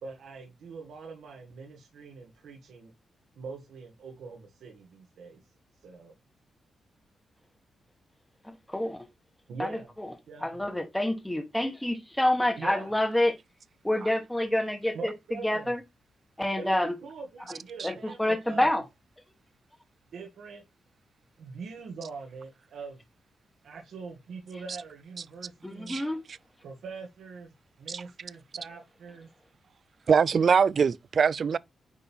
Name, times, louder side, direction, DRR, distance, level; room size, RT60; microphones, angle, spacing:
voice 1, 0.0-2.9 3.3-5.4 5.8-6.1 9.5-9.9 10.3-10.8 12.6-13.0 14.9-15.8 16.5-18.8 20.1-20.6 21.4-23.0 23.6-26.0 26.6-27.5 27.8-29.3, right 4 dB, 80° right, 1.8 m, -43 dB
voice 2, 8.7-9.0 9.6-10.1 10.4-13.3 13.8-15.1 15.4-15.8 16.4-16.9 17.8-18.8 25.6-26.2, left 1 dB, 5° left, 1.1 m, -27 dB
voice 3, 30.1-31.6, right 6 dB, 45° right, 0.3 m, -23 dB
9.3 x 3.6 x 4.3 m
wide cardioid pair, 145°, 0 cm